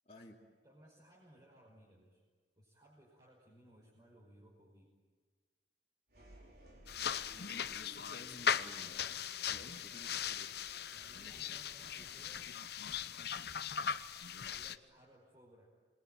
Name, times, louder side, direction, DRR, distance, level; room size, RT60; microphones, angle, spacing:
voice 1, 0.1-0.4 7.3-10.6, left 1 dB, 35° left, -4 dB, 2.6 m, -55 dB
voice 2, 0.6-2.2 2.6-4.9 10.9-13.2 14.4-15.7, right 1 dB, 20° right, -4 dB, 5.5 m, -62 dB
sound 1, 6.1-14.7, right 1 dB, 55° right, 5.5 m, -62 dB
sound 2, 6.9-14.8, left 8 dB, 60° left, 0.9 m, -39 dB
27.5 x 22.5 x 9.3 m, 1.5 s
head